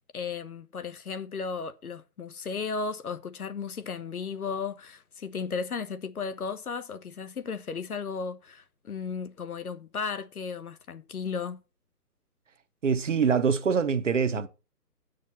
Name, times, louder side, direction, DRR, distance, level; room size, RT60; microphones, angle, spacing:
voice 1, 0.1-11.6, left 5 dB, 60° left, 1.1 m, -35 dB
voice 2, 12.8-14.5, right 6 dB, 50° right, 0.9 m, -24 dB
8.2 x 6.5 x 5.6 m
figure-of-eight pair, 145°, 49 cm